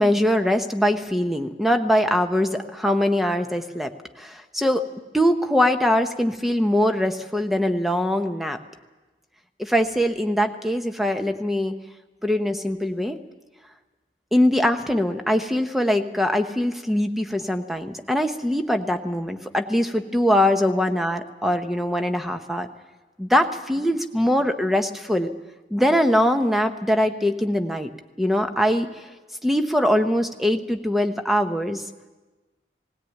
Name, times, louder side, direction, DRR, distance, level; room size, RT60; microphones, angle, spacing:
voice 1, 0.0-3.9 4.2-4.8 5.1-8.6 9.6-11.7 12.2-13.2 14.3-22.7 23.2-25.3 25.7-27.9 28.2-28.9 29.4-31.8, left 1 dB, ahead, 6 dB, 0.9 m, -22 dB
19.0 x 17.0 x 9.2 m, 1.2 s
head